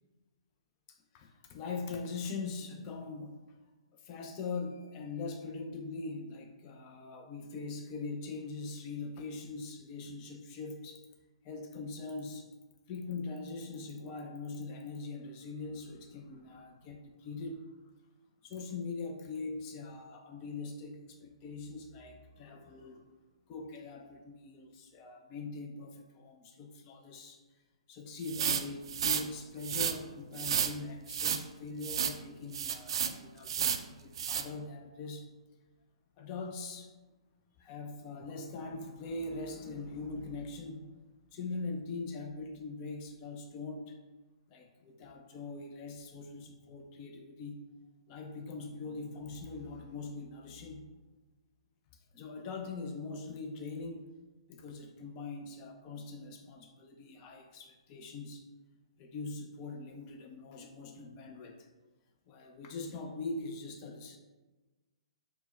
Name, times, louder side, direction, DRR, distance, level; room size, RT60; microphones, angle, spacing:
voice 1, 0.9-3.4 3.9-11.0 11.4-12.5 12.9-17.7 18.4-23.0 23.5-27.4 27.9-35.3 36.2-36.9 37.6-41.0 41.3-44.0 44.5-47.6 48.1-50.9 52.1-54.0 54.5-58.5 59.0-61.7 62.3-64.2, left 3 dB, 30° left, 3 dB, 0.4 m, -42 dB
sound 1, 28.2-29.2 29.6-29.9 30.4-30.7 31.1-31.4 31.8-32.2 32.5-33.1 33.4-33.8 34.2-34.4, right 8 dB, 55° right, 0.3 m, -31 dB
4.3 x 2.1 x 4.0 m, 1.2 s
figure-of-eight pair, 125°, 3 cm